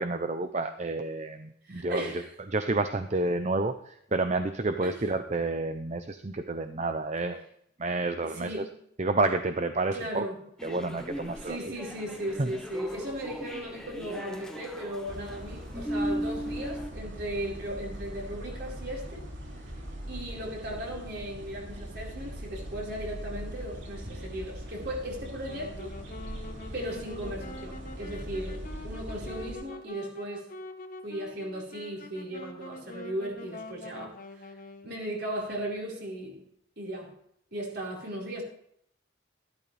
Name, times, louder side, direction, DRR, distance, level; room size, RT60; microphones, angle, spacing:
voice 1, 0.0-2.2 2.5-7.4 7.8-8.6 9.0-10.3 10.6-11.6 12.4-12.5, right 2 dB, 35° right, 8 dB, 0.7 m, -29 dB
voice 2, 1.6-2.2 4.8-5.0 8.2-8.7 9.9-10.4 11.4-19.3 20.1-25.9 26.7-30.6 31.0-34.5 34.8-36.4 36.8-37.1 37.5-38.4, right 1 dB, 55° right, -3 dB, 4.8 m, -37 dB
sound 1, 10.6-16.9, equal, 5° left, 1.2 m, -37 dB
sound 2, 15.1-29.6, equal, 80° right, 2.9 m, -41 dB
Wind instrument woodwind instrument, 25.3-35.0, left 3 dB, 45° left, 1.3 m, -45 dB
14.0 x 12.5 x 3.4 m, 0.70 s
head